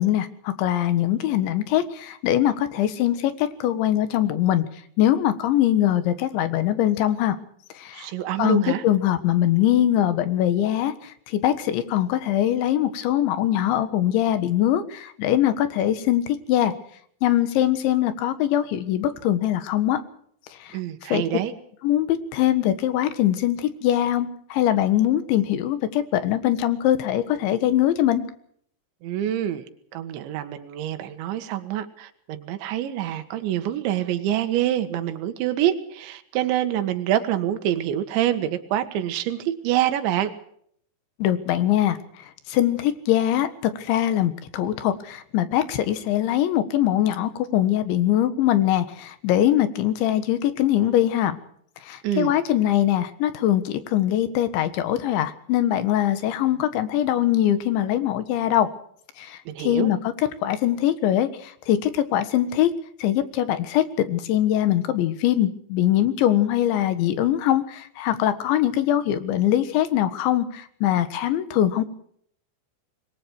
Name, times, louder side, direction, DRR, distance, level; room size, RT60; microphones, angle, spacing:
voice 1, 0.0-4.6 5.0-7.4 7.8-8.1 8.4-16.7 17.2-20.0 20.6-20.8 21.1-21.2 21.8-28.2 41.2-42.0 42.5-51.4 51.8-58.7 59.2-60.1 60.4-62.7 63.0-71.8, left 12 dB, 85° left, 11 dB, 3.9 m, -22 dB
voice 2, 7.9-8.8 20.7-21.5 29.0-29.7 29.9-40.3 52.0-52.3 59.5-59.9, right 11 dB, 80° right, 8 dB, 3.8 m, -26 dB
26.0 x 22.0 x 4.7 m, 0.65 s
omnidirectional pair, 5.2 m